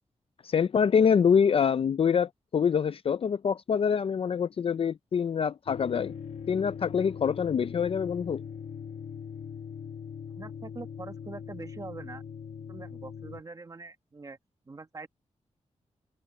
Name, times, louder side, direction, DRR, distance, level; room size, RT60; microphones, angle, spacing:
voice 1, 0.4-6.1 6.5-8.4, left 7 dB, 50° left, 0.4 m, -25 dB
sound 1, 5.7-13.4, left 7 dB, 80° left, 1.2 m, -41 dB
voice 2, 10.3-12.2 12.7-14.4 14.7-15.1, right 3 dB, 30° right, 1.3 m, -43 dB
wide cardioid pair, 160°, 12 cm